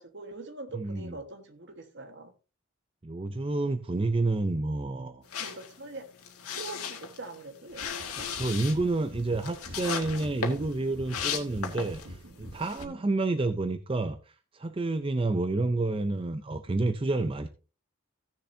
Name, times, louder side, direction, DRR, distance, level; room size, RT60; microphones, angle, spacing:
voice 1, 0.0-2.3 5.4-6.1 6.5-8.3, right 3 dB, 50° right, 1.4 m, -43 dB
voice 2, 0.7-1.2 3.0-5.2 8.3-17.5, right 2 dB, 25° right, 0.5 m, -29 dB
sound 1, 5.3-12.2 12.5-12.8, left 6 dB, 85° left, 1.7 m, -37 dB
sound 2, 7.7-12.9, equal, 70° right, 2.2 m, -45 dB
16.0 x 6.8 x 2.7 m
head